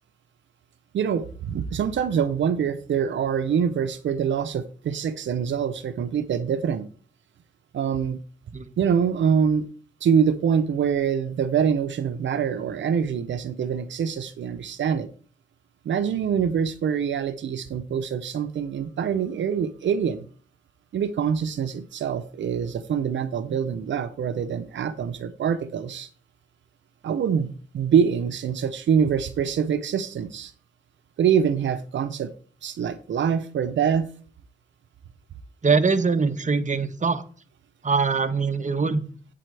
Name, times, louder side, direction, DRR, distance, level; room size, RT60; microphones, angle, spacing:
voice 1, 0.9-6.9 7.7-8.2 8.8-9.7 10.0-15.1 15.8-20.2 20.9-26.1 27.0-30.5 31.2-32.3 32.6-34.1, right 7 dB, 85° right, 10 dB, 0.6 m, -25 dB
voice 2, 35.6-37.2 37.8-39.1, right 4 dB, 40° right, 8 dB, 1.1 m, -22 dB
8.4 x 7.6 x 3.3 m, 0.42 s
cardioid pair, 55°, 19 cm